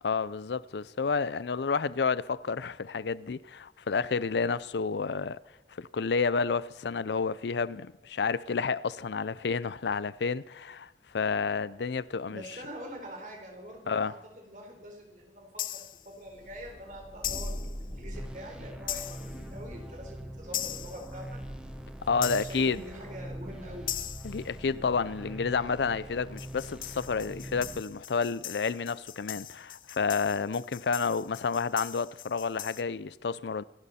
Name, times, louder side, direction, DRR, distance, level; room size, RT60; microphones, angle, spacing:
voice 1, 0.0-5.4 5.8-12.4 13.9-14.2 22.0-22.8 24.2-33.6, left 5 dB, 80° left, 0.5 m, -30 dB
voice 2, 12.3-21.4 22.1-23.9, equal, 45° right, 4.2 m, -45 dB
sound 1, 15.6-16.1 17.2-17.7 18.9-19.4 20.5-21.1 22.2-22.8 23.9-24.4 26.4-32.8, left 12 dB, 50° left, 0.7 m, -39 dB
Thunder, 16.2-24.7, equal, 35° left, 3.2 m, -44 dB
sound 2, 18.1-27.8, right 1 dB, 5° right, 1.0 m, -43 dB
26.5 x 12.5 x 4.3 m
head